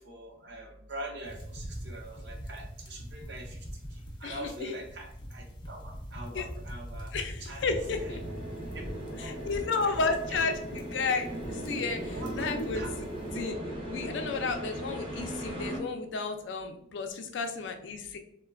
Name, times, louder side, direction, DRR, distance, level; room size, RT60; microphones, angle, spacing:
voice 1, 0.1-3.6 4.2-7.1 7.4-7.6 8.0-8.1 8.7-10.4 12.1-12.9, right 1 dB, 65° right, 2 dB, 0.7 m, -43 dB
sound 1, 1.2-13.5, equal, 25° left, 0.5 m, -43 dB
voice 2, 4.2-4.8 6.3-6.5 7.1-8.2 9.2-13.1 13.3-13.6 13.9-18.2, left 4 dB, 80° left, 6 dB, 0.4 m, -33 dB
sound 2, 7.7-15.8, right 1 dB, 30° right, 0.6 m, -38 dB
3.0 x 2.1 x 2.4 m, 0.70 s
head